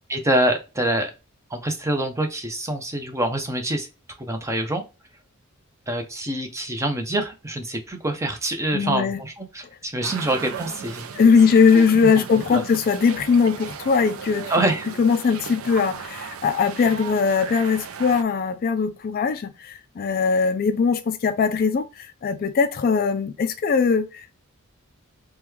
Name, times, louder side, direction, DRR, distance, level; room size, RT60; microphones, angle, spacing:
voice 1, 0.1-1.1 1.5-3.9 4.2-4.8 5.9-11.1 11.7-11.8 12.3-12.6 14.5-14.9, right 1 dB, 15° right, 0.6 m, -25 dB
voice 2, 8.7-9.2 11.1-14.5 15.0-24.3, left 5 dB, 40° left, 0.3 m, -20 dB
sound 1, 10.0-18.2, right 7 dB, 70° right, 0.4 m, -36 dB
3.0 x 2.2 x 3.3 m
head